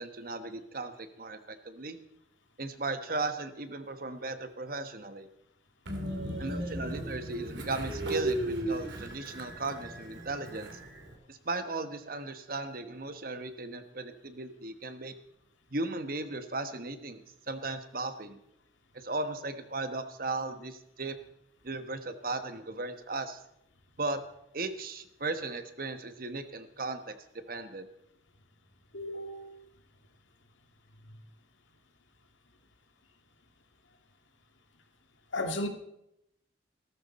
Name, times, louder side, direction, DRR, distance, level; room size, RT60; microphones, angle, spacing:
voice 1, 0.0-2.0 2.6-5.3 6.4-10.8 11.3-15.1 15.7-18.4 18.9-21.2 21.6-23.4 24.0-24.2 24.5-27.2 27.5-27.9, right 3 dB, 50° right, 9 dB, 1.2 m, -36 dB
Train, 5.9-11.1, right 1 dB, 75° right, 2.8 m, -36 dB
voice 2, 28.9-29.7 35.3-35.7, left 1 dB, 90° left, 5 dB, 1.9 m, -35 dB
16.5 x 14.0 x 4.2 m, 0.80 s
head